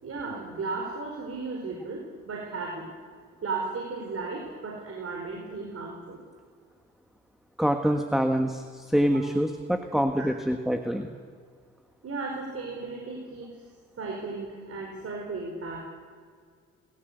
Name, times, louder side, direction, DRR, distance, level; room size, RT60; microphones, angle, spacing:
voice 1, 0.0-2.9 3.4-6.2 12.0-13.6 14.0-15.9, right 3 dB, 50° right, 0 dB, 4.9 m, -35 dB
voice 2, 7.6-11.1, equal, ahead, 6 dB, 1.5 m, -25 dB
29.5 x 14.5 x 8.2 m, 2.1 s
cardioid pair, 90°, 30 cm